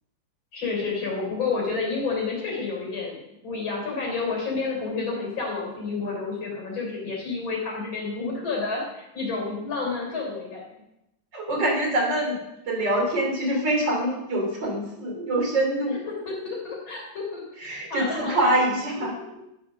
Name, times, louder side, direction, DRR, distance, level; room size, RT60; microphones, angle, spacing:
voice 1, 0.5-10.6 16.3-17.4 17.9-18.5 19.0-19.2, left 4 dB, 90° left, -2 dB, 4.3 m, -30 dB
voice 2, 11.3-12.4 12.7-16.0 17.6-19.1, right 1 dB, 65° right, -1 dB, 3.7 m, -25 dB
12.5 x 6.2 x 6.2 m, 0.88 s
omnidirectional pair, 2.1 m